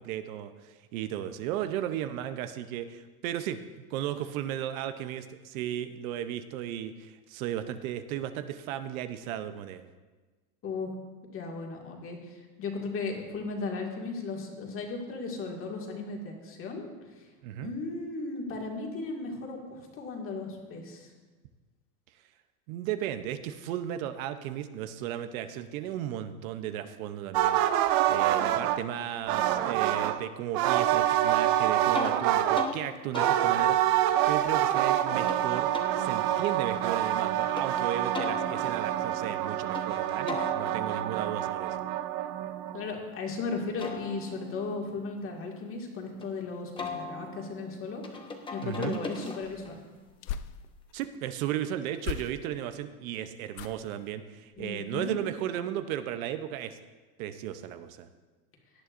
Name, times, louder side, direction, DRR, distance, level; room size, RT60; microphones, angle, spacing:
voice 1, 0.0-3.6 3.9-9.9 17.4-17.7 22.7-35.7 36.0-41.8 48.6-49.0 50.9-56.8 57.2-58.1, right 11 dB, 60° right, 10 dB, 0.8 m, -35 dB
voice 2, 11.3-17.3 17.6-21.1 42.7-48.2 48.5-49.8 54.6-55.1, left 4 dB, 25° left, 0 dB, 2.1 m, -36 dB
sound 1, 27.3-28.8 29.3-30.2 30.5-32.7 33.1-42.9, right 12 dB, 35° right, 0.4 m, -26 dB
sound 2, 31.9-32.2 32.5-32.8 33.1-35.4 35.7-37.7 38.1-39.9 40.3-43.2 43.6-46.3 46.8-49.8, left 3 dB, 10° left, 0.9 m, -41 dB
sound 3, 49.4-51.1 52.0-52.7 53.5-54.0 54.5-54.8 55.2-55.3, left 9 dB, 60° left, 0.7 m, -40 dB
18.0 x 11.0 x 2.6 m, 1.3 s
supercardioid pair, 150°, 47 cm